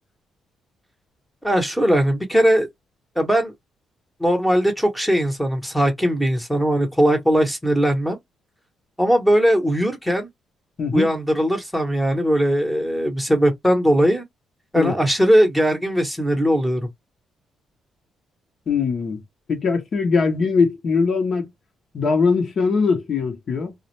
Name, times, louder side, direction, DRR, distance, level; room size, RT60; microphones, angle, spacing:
voice 1, 1.4-2.7 3.2-3.5 4.2-8.2 9.0-10.3 10.9-14.2 14.7-16.9, equal, 5° left, 0.9 m, -19 dB
voice 2, 10.8-11.1 14.7-14.9 18.7-19.2 19.5-21.5 21.9-23.7, left 5 dB, 50° left, 0.8 m, -21 dB
2.3 x 2.0 x 2.9 m
cardioid pair, 90°, 0 cm